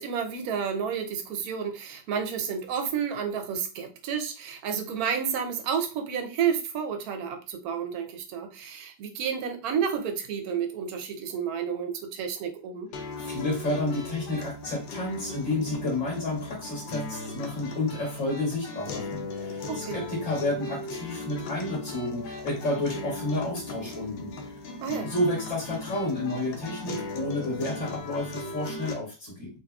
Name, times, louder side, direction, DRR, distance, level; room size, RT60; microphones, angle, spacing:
voice 1, 0.0-12.9 19.7-20.0 24.8-25.1, right 7 dB, 65° right, 1.0 m, -31 dB
sound 1, 12.9-28.9, left 3 dB, 90° left, 1.3 m, -38 dB
voice 2, 13.2-24.3 25.0-29.5, left 1 dB, 45° left, 1.6 m, -30 dB
3.9 x 2.8 x 2.3 m
omnidirectional pair, 2.0 m